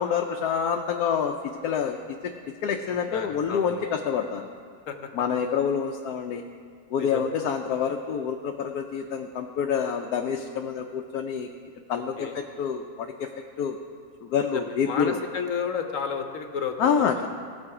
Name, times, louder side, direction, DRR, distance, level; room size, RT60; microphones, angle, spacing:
voice 1, 0.0-2.3 2.6-4.5 5.1-6.4 6.9-11.5 11.9-13.3 13.6-13.8 14.3-15.2 16.8-17.3, left 7 dB, 85° left, 3 dB, 1.1 m, -27 dB
voice 2, 2.9-3.9 4.9-5.0 6.9-7.3 11.9-12.4 14.5-17.3, left 6 dB, 60° left, 6 dB, 1.2 m, -32 dB
17.5 x 6.8 x 4.8 m, 2.1 s
omnidirectional pair, 1.6 m